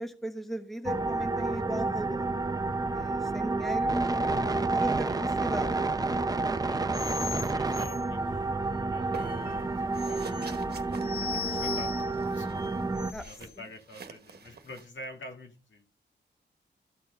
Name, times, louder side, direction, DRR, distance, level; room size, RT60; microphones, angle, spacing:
voice 1, 0.0-2.3 2.8-5.7 13.1-13.2, equal, ahead, 6 dB, 1.3 m, -37 dB
sound 1, 0.9-13.1, right 3 dB, 20° right, 0.5 m, -30 dB
voice 2, 4.8-5.4 6.6-6.8 7.4-8.5 8.9-11.1 11.4-12.5 13.2-15.9, left 2 dB, 85° left, 4 dB, 2.4 m, -48 dB
sound 2, 6.9-13.5, left 9 dB, 55° left, 0.5 m, -41 dB
sound 3, 9.1-9.6 9.9-14.9, right 5 dB, 60° right, 1.2 m, -48 dB
13.5 x 4.6 x 5.3 m, 0.35 s
wide cardioid pair, 145°, 19 cm